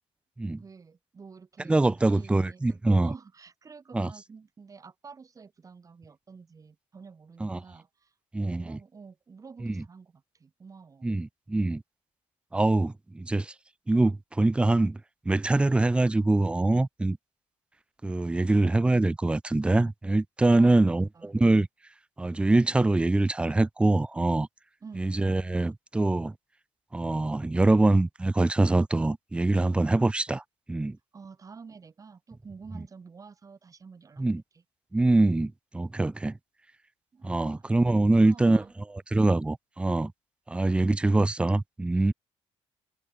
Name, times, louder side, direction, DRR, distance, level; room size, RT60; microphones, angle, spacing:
voice 1, 0.5-8.1 8.4-11.1 20.5-21.3 24.8-25.0 31.1-34.2 34.5-34.6 37.1-37.8 38.1-38.7, right 5 dB, 30° right, 5.1 m, -49 dB
voice 2, 1.7-3.1 3.9-4.1 7.4-7.6 8.3-8.8 9.6-9.8 11.0-11.8 12.5-13.5 13.9-15.0 15.3-17.2 18.0-21.7 22.2-24.5 25.0-26.3 26.9-30.4 30.7-31.0 34.2-34.4 34.9-36.4 37.2-38.6 38.9-40.1 40.5-42.1, right 2 dB, 10° right, 0.4 m, -24 dB
cardioid pair, 125°, 12 cm